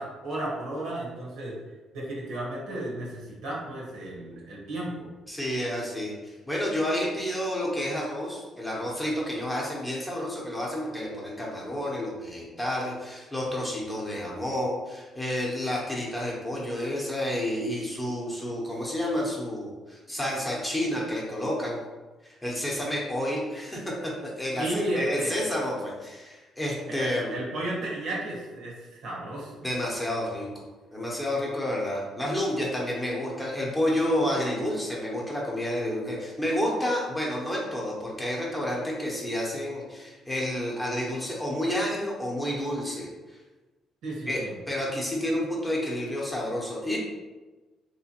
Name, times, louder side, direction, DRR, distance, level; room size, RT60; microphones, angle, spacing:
voice 1, 0.0-1.6 1.9-5.1 24.6-25.4 26.9-29.6 44.0-44.5, right 1 dB, 75° right, -3 dB, 1.1 m, -33 dB
voice 2, 5.3-21.8 22.2-27.3 29.6-30.5 30.9-43.4 44.3-47.0, left 1 dB, 10° left, -4 dB, 0.8 m, -30 dB
3.3 x 3.0 x 2.9 m, 1.2 s
cardioid pair, 125°, 0 cm